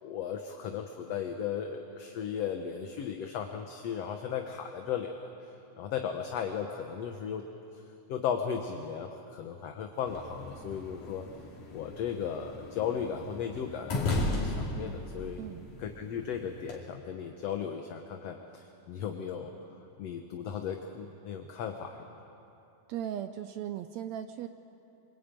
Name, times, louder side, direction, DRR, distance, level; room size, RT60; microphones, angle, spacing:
voice 1, 0.0-5.3 5.8-7.4 8.1-11.2 11.7-15.4 15.8-19.5 20.0-22.0, left 7 dB, 60° left, 4 dB, 2.1 m, -36 dB
sound 1, 10.1-16.8, left 2 dB, 90° left, 4.4 m, -36 dB
voice 2, 15.4-15.7 22.9-24.5, right 10 dB, 75° right, 10 dB, 1.8 m, -37 dB
24.5 x 24.0 x 9.0 m, 2.9 s
omnidirectional pair, 3.5 m